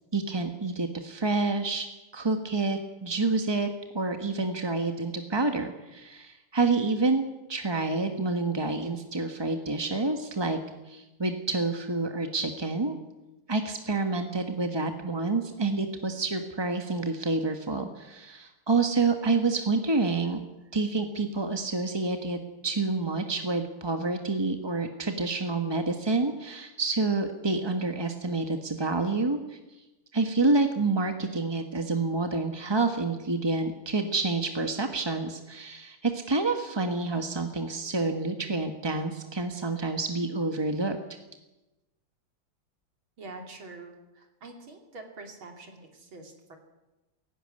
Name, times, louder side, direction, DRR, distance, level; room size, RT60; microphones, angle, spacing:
voice 1, 0.1-1.9 2.1-3.7 3.9-7.2 7.5-10.6 10.9-12.9 13.5-20.4 20.7-29.6 30.1-41.0, right 3 dB, 20° right, 6 dB, 0.8 m, -28 dB
voice 2, 43.2-46.6, right 3 dB, 65° right, 4 dB, 3.5 m, -45 dB
17.0 x 16.5 x 9.9 m, 1.0 s
omnidirectional pair, 2.4 m